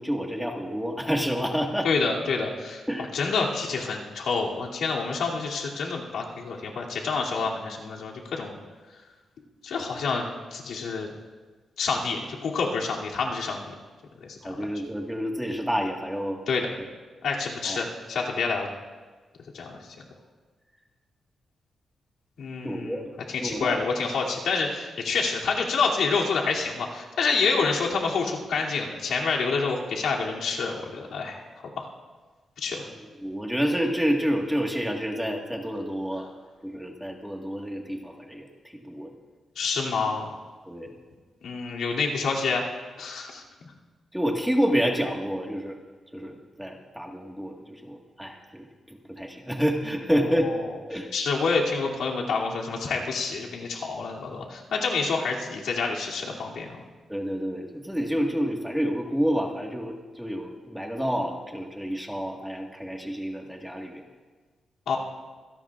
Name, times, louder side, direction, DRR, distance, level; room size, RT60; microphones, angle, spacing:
voice 1, 0.0-1.9 2.9-3.1 14.4-16.4 17.6-17.9 22.6-23.0 23.4-23.8 33.2-36.3 36.6-38.5 38.7-39.1 40.7-40.9 44.1-45.8 46.1-50.6 50.9-51.1 57.1-64.0, equal, ahead, 1 dB, 1.6 m, -28 dB
voice 2, 1.8-2.8 3.1-8.6 9.6-11.1 11.8-13.6 14.2-14.7 16.5-16.7 17.2-18.7 19.5-19.9 22.4-31.4 31.8-31.9 32.6-32.9 39.6-40.3 41.4-42.7 43.0-43.4 50.1-50.6 51.1-56.8 64.9-65.0, left 4 dB, 90° left, -3 dB, 2.7 m, -28 dB
25.5 x 17.5 x 2.5 m, 1.4 s
wide cardioid pair, 140°, 0 cm